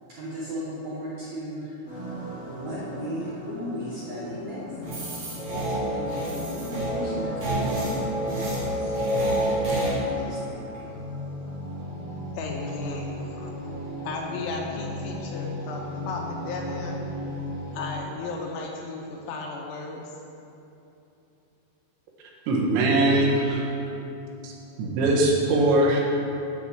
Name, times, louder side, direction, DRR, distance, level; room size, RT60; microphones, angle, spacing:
voice 1, 0.1-1.7 2.4-5.0 5.4-8.9 9.2-10.7, equal, 70° right, -9 dB, 1.8 m, -36 dB
sound 1, 1.9-17.9, equal, 35° left, 1.3 m, -37 dB
sound 2, 4.8-9.9, right 1 dB, 50° right, 2.6 m, -28 dB
voice 2, 12.4-13.5 14.0-17.0 17.7-20.0, left 3 dB, 80° left, 0 dB, 2.7 m, -35 dB
voice 3, 22.5-23.6 24.4-24.5 24.8-26.0, right 2 dB, 85° right, -1 dB, 3.4 m, -21 dB
8.1 x 5.3 x 7.1 m, 2.9 s
omnidirectional pair, 5.2 m